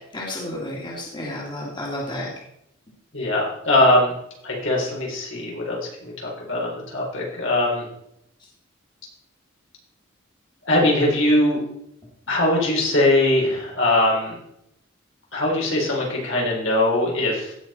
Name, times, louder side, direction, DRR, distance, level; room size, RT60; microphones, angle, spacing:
voice 1, 0.1-2.3, left 1 dB, 25° left, -4 dB, 2.5 m, -31 dB
voice 2, 3.1-4.1 4.4-7.9 10.6-11.6 12.3-14.4 15.3-17.5, left 1 dB, 65° left, -3 dB, 4.1 m, -21 dB
17.0 x 5.8 x 4.4 m, 0.78 s
head